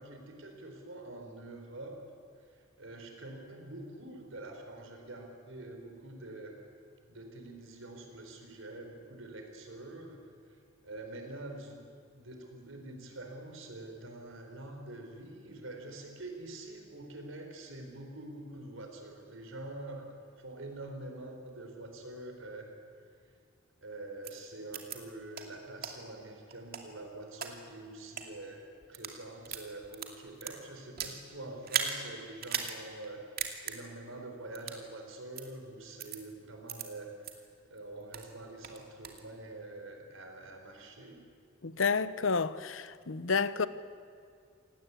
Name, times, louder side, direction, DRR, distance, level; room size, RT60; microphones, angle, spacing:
voice 1, 0.0-2.0 2.5-6.5 7.1-10.2 10.5-11.8 12.1-20.1 20.4-22.7 23.8-41.3, right 2 dB, 85° right, 4.6 m, -46 dB
sound 1, 24.2-24.3 24.7-25.0 25.3-25.4 25.8-25.9 26.5-27.5 28.0-28.2 28.8-29.2 29.4-31.2 31.6-31.9 32.4-32.7 33.0-33.1 33.4-33.7 34.5-34.8 35.3-35.4 36.0-36.2 36.7-36.8 37.2-37.3 37.8-38.3 38.6-39.2, right 8 dB, 50° right, 2.4 m, -36 dB
voice 2, 41.6-43.7, left 5 dB, 80° left, 0.9 m, -30 dB
28.0 x 18.0 x 8.5 m
head